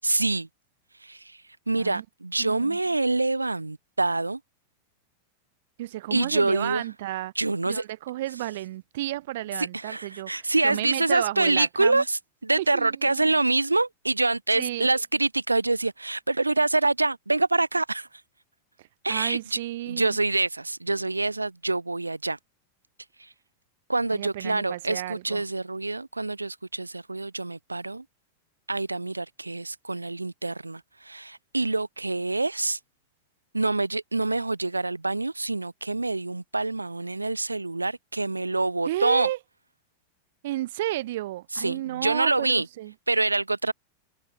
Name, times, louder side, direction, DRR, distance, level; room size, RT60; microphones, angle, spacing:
voice 1, 0.0-0.5 1.0-1.4 1.7-4.4 6.1-6.8 7.4-7.8 9.6-18.1 19.0-19.6 19.9-22.4 23.2-23.3 23.9-28.0 28.7-32.8 33.5-39.3 41.5-42.7 43.1-43.7, right 2 dB, 80° right, 4.0 m, -26 dB
voice 2, 1.7-2.0 2.4-2.8 5.8-7.3 7.7-12.0 12.6-13.3 14.6-14.9 19.1-20.2 24.1-25.4 38.9-39.4 40.4-42.9, right 15 dB, 55° right, 3.7 m, -32 dB
figure-of-eight pair, 90°, 0 cm